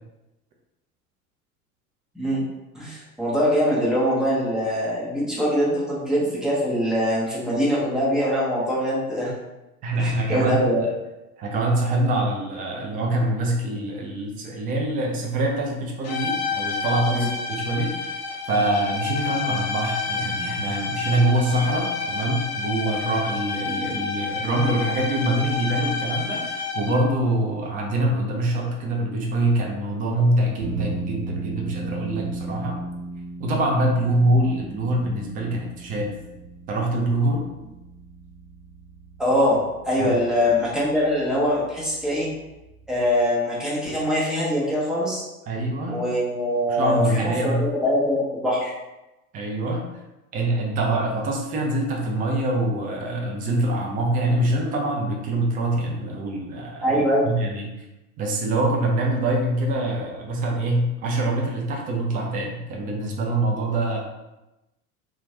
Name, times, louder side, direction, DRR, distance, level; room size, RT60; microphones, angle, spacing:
voice 1, 2.7-9.3 9.9-10.8 17.1-17.3 39.2-42.3 42.9-45.2 45.9-48.7 56.8-57.3, equal, ahead, -7 dB, 0.9 m, -23 dB
voice 2, 9.8-10.6 11.4-18.2 18.5-32.8 33.4-36.1 36.7-37.5 40.0-40.1 45.5-46.0 46.7-47.6 49.3-49.9 50.3-57.7 58.2-64.0, right 1 dB, 20° right, 0 dB, 0.4 m, -24 dB
sound 1, 16.0-27.2, left 4 dB, 45° left, 0.6 m, -29 dB
sound 2, 30.6-43.1, right 3 dB, 55° right, 0.9 m, -37 dB
2.9 x 2.3 x 2.7 m, 0.98 s
figure-of-eight pair, 75°, 45 cm